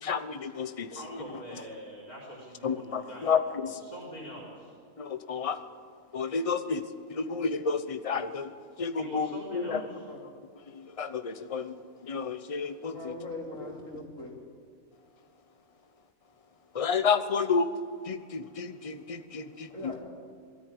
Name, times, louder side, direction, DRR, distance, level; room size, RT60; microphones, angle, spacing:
voice 1, 0.0-0.9 2.6-3.8 5.0-5.6 6.1-6.8 7.1-8.5 8.8-9.8 10.7-11.7 12.0-13.0 16.7-17.7 18.1-19.7, left 5 dB, 30° left, 10 dB, 0.8 m, -30 dB
voice 2, 0.9-4.7 9.0-10.0, equal, 80° left, -2 dB, 4.9 m, -44 dB
voice 3, 12.9-14.3 19.7-20.0, left 2 dB, 65° left, -1 dB, 3.7 m, -40 dB
21.0 x 13.5 x 10.0 m, 2.3 s
omnidirectional pair, 1.5 m